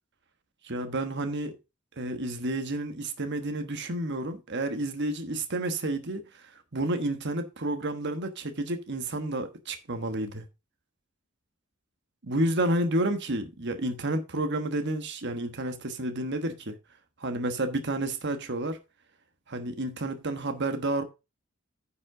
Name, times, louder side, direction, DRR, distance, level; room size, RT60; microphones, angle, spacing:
voice 1, 0.6-1.5 2.0-10.4 12.2-16.7 17.2-18.8 19.5-21.0, right 1 dB, 55° right, 1.3 m, -30 dB
9.7 x 5.4 x 4.8 m
head